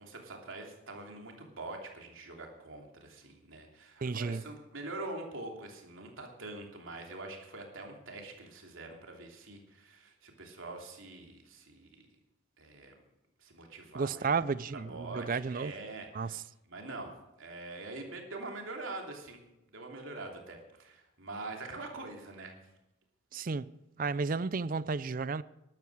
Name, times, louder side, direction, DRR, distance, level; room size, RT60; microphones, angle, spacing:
voice 1, 0.0-12.1 12.6-12.9 13.4-14.4 14.7-19.4 19.7-22.5, right 2 dB, 70° right, 3.0 m, -44 dB
voice 2, 4.0-4.4 14.0-15.7 16.1-16.3 23.3-23.7 24.0-25.4, right 4 dB, 40° right, 0.4 m, -32 dB
12.5 x 12.0 x 6.3 m
head